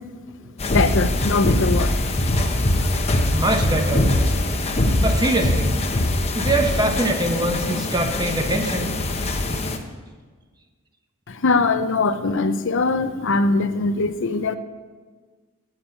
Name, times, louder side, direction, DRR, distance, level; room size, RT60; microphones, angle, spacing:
sound 1, 0.6-9.8, left 1 dB, 30° left, 0.9 m, -22 dB
voice 1, 0.7-2.0 2.4-2.5 2.8-2.9 11.3-14.6, left 3 dB, 55° left, 10 dB, 0.6 m, -21 dB
voice 2, 3.3-4.1 5.0-5.8 6.4-8.9, right 1 dB, 20° right, 5 dB, 1.1 m, -23 dB
9.7 x 9.0 x 8.9 m, 1.4 s
head